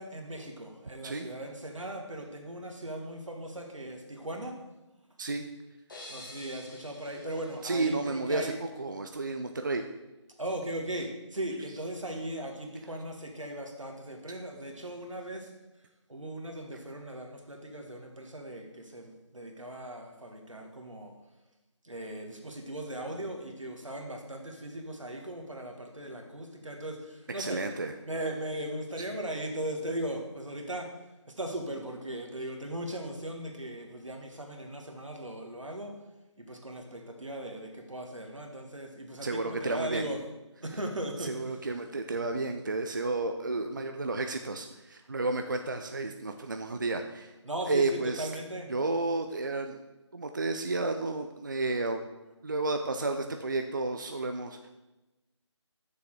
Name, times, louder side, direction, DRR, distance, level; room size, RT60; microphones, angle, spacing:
voice 1, 0.0-4.5 6.1-8.6 10.4-15.5 16.1-21.1 21.8-27.6 28.1-30.9 31.4-35.9 36.4-40.2 40.6-41.5 47.4-48.7, right 1 dB, 85° right, 3 dB, 1.7 m, -38 dB
sound 1, 5.9-8.7, left 1 dB, 40° left, 2.2 m, -49 dB
voice 2, 7.6-9.8 27.4-27.9 39.2-40.2 41.2-47.3 47.7-48.3 48.7-49.8 50.1-52.0 52.4-54.7, right 3 dB, 40° right, 6 dB, 0.4 m, -32 dB
6.9 x 6.9 x 4.7 m, 1.0 s
figure-of-eight pair, 160°, 16 cm